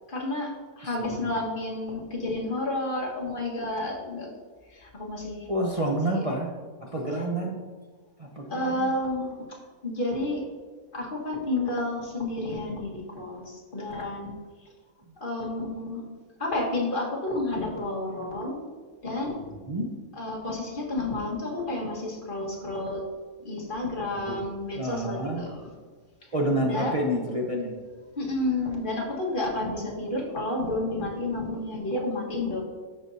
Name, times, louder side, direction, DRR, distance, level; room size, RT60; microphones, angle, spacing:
voice 1, 0.1-4.3 4.7-5.5 6.1-6.2 8.5-9.4 9.8-10.5 10.9-14.3 15.2-16.0 16.4-18.6 19.0-19.4 20.2-23.0 23.4-25.6 26.6-27.0 28.1-32.6, left 2 dB, 35° left, -3 dB, 1.7 m, -30 dB
voice 2, 0.8-1.3 5.5-6.5 6.8-7.6 8.2-8.9 19.4-19.9 24.3-24.4 24.7-25.5 26.3-27.7, right 1 dB, 35° right, -2 dB, 0.6 m, -29 dB
13.5 x 5.3 x 2.7 m, 1.5 s
omnidirectional pair, 1.6 m